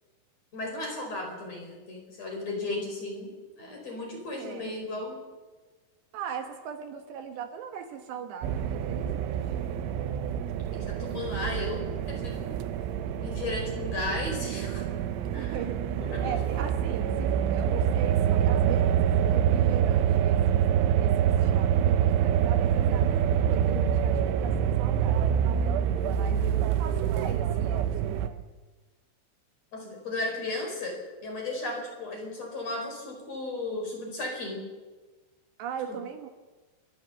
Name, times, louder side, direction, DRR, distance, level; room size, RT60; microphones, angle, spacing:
voice 1, 0.5-3.3 3.6-5.2 10.7-12.6 13.2-14.8 15.3-15.5 16.1-16.4 29.7-34.6, left 2 dB, 35° left, 0 dB, 5.5 m, -35 dB
voice 2, 4.4-4.7 6.1-9.4 15.3-20.6 21.0-25.6 26.0-28.5 35.6-36.3, right 8 dB, 70° right, 6 dB, 3.3 m, -39 dB
sound 1, 8.4-28.3, right 9 dB, 90° right, 3.4 m, -26 dB
29.5 x 12.5 x 7.2 m, 1.3 s
omnidirectional pair, 5.4 m